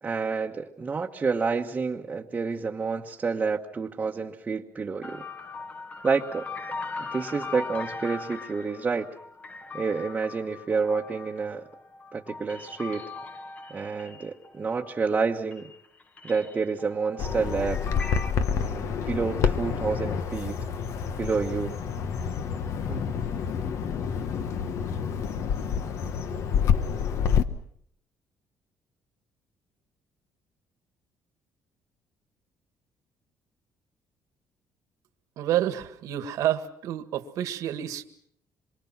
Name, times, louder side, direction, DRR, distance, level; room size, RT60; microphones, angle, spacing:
voice 1, 0.0-5.2 6.0-6.5 7.0-9.1 9.7-11.7 12.1-13.1 13.7-15.7 16.2-17.8 18.5-20.7 21.2-21.8 22.9-23.1, right 4 dB, 25° right, 0 dB, 1.2 m, -29 dB
sound 1, 5.0-15.2 15.5-18.3, left 4 dB, 25° left, 1.1 m, -40 dB
Bird vocalization bird call bird song, 17.2-27.4, left 7 dB, 60° left, 1.3 m, -28 dB
voice 2, 35.4-38.0, right 12 dB, 75° right, 8 dB, 1.8 m, -29 dB
27.0 x 24.0 x 6.0 m, 0.68 s
cardioid pair, 130°, 6 cm